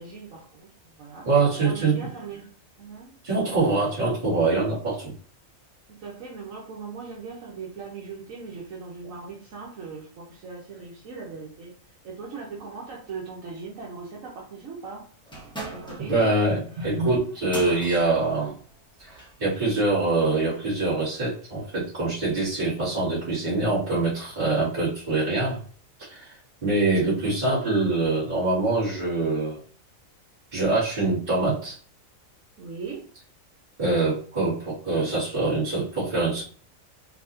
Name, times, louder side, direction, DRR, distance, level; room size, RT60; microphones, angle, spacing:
voice 1, 0.0-1.3 1.6-3.1 5.9-11.8 12.0-15.1 15.7-17.2 32.6-33.1, right 3 dB, 75° right, -3 dB, 1.2 m, -38 dB
voice 2, 1.3-2.1 3.2-5.1 16.0-16.6 16.8-18.6 19.1-25.6 26.0-26.3 26.6-29.6 30.5-31.8 33.8-36.4, right 3 dB, 35° right, -12 dB, 2.2 m, -24 dB
sound 1, 15.3-19.4, right 2 dB, 5° left, 0.9 m, -40 dB
4.6 x 2.8 x 2.6 m, 0.42 s
omnidirectional pair, 1.4 m